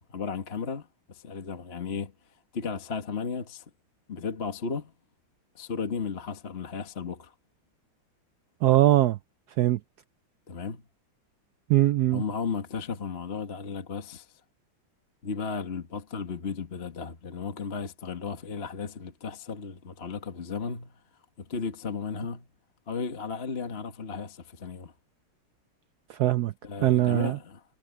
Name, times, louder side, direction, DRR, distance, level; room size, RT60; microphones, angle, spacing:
voice 1, 0.1-2.1 2.5-3.6 4.1-4.9 5.5-7.3 10.5-10.8 12.1-14.3 15.2-20.9 21.4-22.5 22.9-24.9 26.6-27.6, left 5 dB, 30° left, 1.6 m, -34 dB
voice 2, 8.6-9.2 9.6-9.8 11.7-12.2 26.1-26.5 26.8-27.4, right 14 dB, 90° right, 0.8 m, -21 dB
omnidirectional pair, 2.3 m